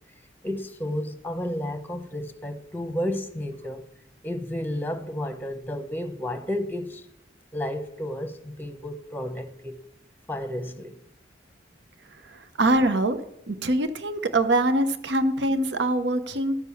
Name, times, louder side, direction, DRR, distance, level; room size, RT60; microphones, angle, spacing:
voice 1, 0.4-3.8 4.2-7.1 7.5-9.7 10.3-11.0, left 1 dB, 10° left, 0.9 m, -32 dB
voice 2, 12.2-13.2 13.5-16.6, right 1 dB, 75° right, 0.8 m, -23 dB
13.5 x 6.7 x 7.0 m
head